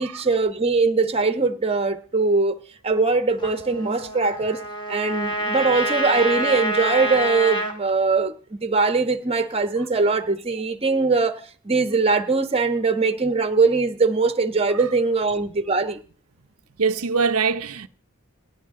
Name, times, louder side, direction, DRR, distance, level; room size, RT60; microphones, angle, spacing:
voice 1, 0.0-2.6 2.8-4.6 4.9-11.4 11.6-16.0, right 4 dB, 30° right, 1.2 m, -21 dB
Trumpet, 3.4-7.7, equal, 20° left, 2.7 m, -27 dB
voice 2, 16.8-17.9, right 5 dB, 85° right, 0.8 m, -22 dB
29.0 x 11.0 x 3.8 m
head